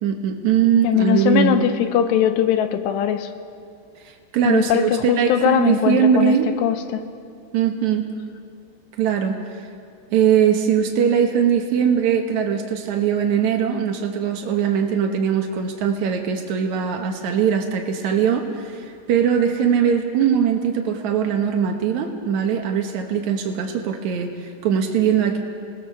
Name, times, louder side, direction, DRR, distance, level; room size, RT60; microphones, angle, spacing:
voice 1, 0.0-1.7 4.0-6.5 7.5-8.1 9.0-9.4 10.1-25.4, right 8 dB, 80° right, 3 dB, 1.6 m, -21 dB
voice 2, 0.8-3.3 4.4-7.0, left 10 dB, 80° left, 9 dB, 2.9 m, -20 dB
26.0 x 19.5 x 6.7 m, 2.4 s
omnidirectional pair, 5.2 m